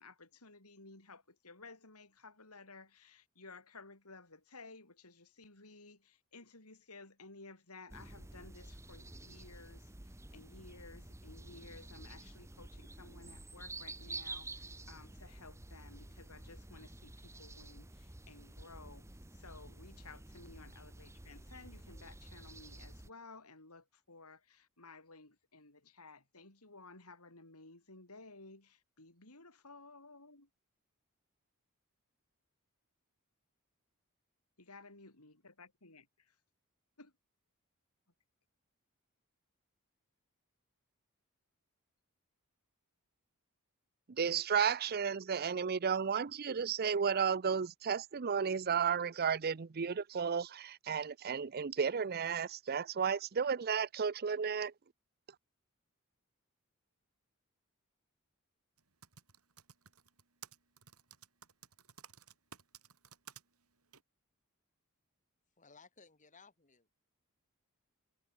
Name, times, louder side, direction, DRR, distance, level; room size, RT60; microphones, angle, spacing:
voice 1, 0.0-30.5 34.6-36.3 37.0-37.1, left 3 dB, 85° left, 6.5 m, -56 dB
sound 1, 7.9-23.1, right 2 dB, 15° right, 1.1 m, -50 dB
voice 2, 44.1-54.7, right 6 dB, 45° right, 0.5 m, -33 dB
Typing, 58.8-63.4 63.9-64.0, right 8 dB, 80° right, 5.7 m, -55 dB
voice 3, 65.6-66.9, left 4 dB, 35° left, 5.5 m, -60 dB
head